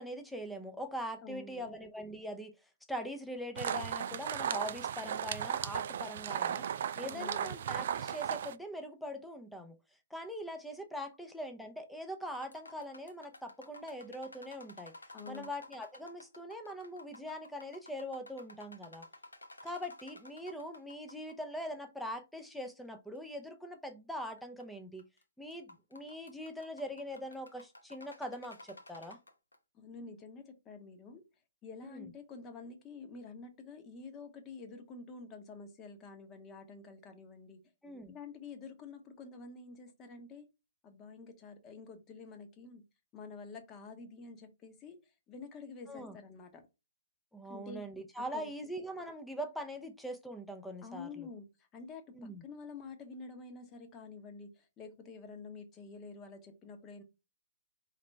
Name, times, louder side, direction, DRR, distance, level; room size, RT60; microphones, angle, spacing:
voice 1, 0.0-2.5 2.9-6.6 7.0-9.8 10.1-14.9 15.3-19.1 19.6-25.0 25.4-29.2 31.8-32.1 37.8-38.1 45.9-46.2 47.3-51.3 52.1-52.4, equal, ahead, 0.6 m, -42 dB
voice 2, 1.2-1.7 7.0-7.5 15.1-15.5 29.7-31.2 31.6-37.6 38.1-40.5 40.8-42.8 43.1-45.0 45.3-46.6 47.5-47.8 48.2-48.5 50.8-51.5 51.7-57.0, left 4 dB, 20° left, 1.0 m, -48 dB
sound 1, 3.6-8.5, right 9 dB, 50° right, 0.3 m, -36 dB
sound 2, 12.3-21.3 21.6-21.7 22.4-22.5 23.2-23.3 24.4-24.6 25.0-25.2 25.5-29.6, left 2 dB, 80° left, 0.9 m, -53 dB
4.8 x 3.3 x 3.3 m
figure-of-eight pair, 125°, 0 cm